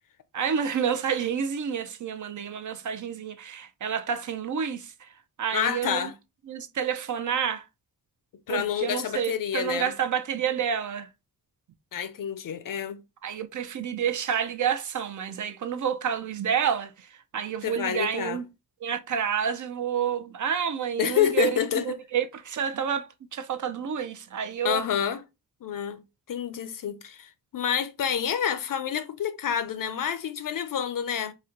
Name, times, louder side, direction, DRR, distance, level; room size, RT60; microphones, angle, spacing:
voice 1, 0.3-4.9 5.4-6.1 6.5-7.6 8.5-11.1 13.2-17.1 17.3-18.4 18.8-24.8, right 8 dB, 55° right, 0.5 m, -29 dB
voice 2, 5.5-6.1 8.5-9.9 11.9-13.0 17.6-18.4 21.0-21.9 24.6-25.2 25.6-26.0 26.3-31.3, left 9 dB, 60° left, 0.6 m, -28 dB
4.2 x 2.1 x 3.7 m
wide cardioid pair, 130°, 36 cm